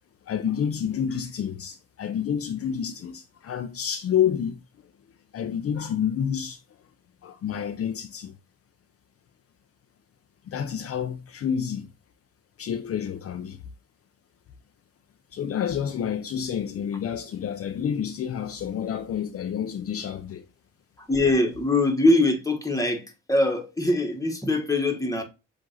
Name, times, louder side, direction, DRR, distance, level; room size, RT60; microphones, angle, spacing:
voice 1, 0.3-4.6 5.3-6.6 7.2-8.3 10.5-11.9 12.6-13.6 15.3-20.5, left 8 dB, 50° left, 0.5 m, -29 dB
voice 2, 21.1-23.0 23.3-25.2, left 2 dB, 10° left, 1.3 m, -22 dB
7.4 x 2.6 x 2.5 m
cardioid pair, 90°, 30 cm